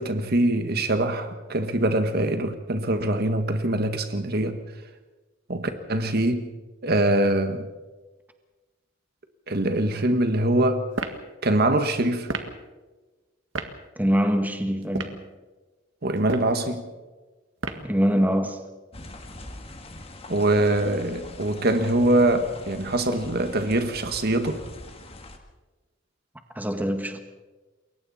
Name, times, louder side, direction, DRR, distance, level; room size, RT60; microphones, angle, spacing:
voice 1, 0.0-4.6 5.5-6.5 6.8-7.7 9.5-10.9 11.4-12.3 16.0-16.8 20.3-24.6, right 1 dB, 55° right, 1.6 m, -23 dB
sound 1, 10.9-11.2 12.3-12.5 13.5-13.7 14.8-15.2 16.2-16.6 17.6-17.9, right 3 dB, 80° right, 1.8 m, -31 dB
voice 2, 14.0-15.2 17.7-18.6 26.5-27.2, equal, 10° right, 1.7 m, -24 dB
sound 2, 18.9-25.4, left 2 dB, 30° left, 2.0 m, -43 dB
28.5 x 22.0 x 4.3 m
head